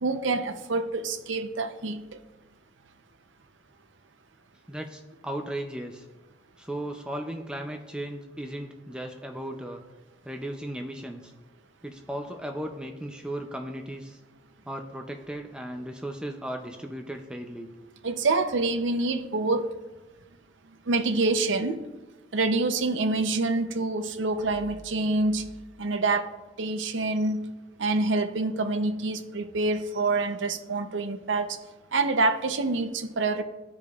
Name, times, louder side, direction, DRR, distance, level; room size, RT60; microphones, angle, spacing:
voice 1, 0.0-2.0 18.0-19.7 20.9-21.8 22.3-25.5 25.8-26.3 26.6-27.5 27.8-31.5 31.9-33.4, right 3 dB, 80° right, 9 dB, 0.6 m, -26 dB
voice 2, 4.7-6.1 6.6-9.8 10.2-11.3 11.8-14.2 14.7-17.7, right 1 dB, 5° right, 4 dB, 0.4 m, -36 dB
13.5 x 5.0 x 2.4 m, 1.1 s
head